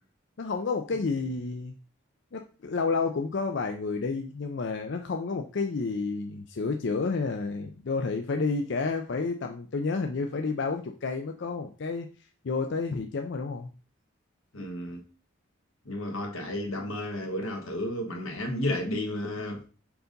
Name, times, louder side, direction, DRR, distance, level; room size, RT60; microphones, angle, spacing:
voice 1, 0.4-1.7 2.3-12.1 12.4-13.7, left 4 dB, 60° left, 0.5 m, -30 dB
voice 2, 14.5-15.0 15.9-19.7, left 1 dB, 90° left, 1.5 m, -32 dB
4.7 x 3.9 x 5.2 m
head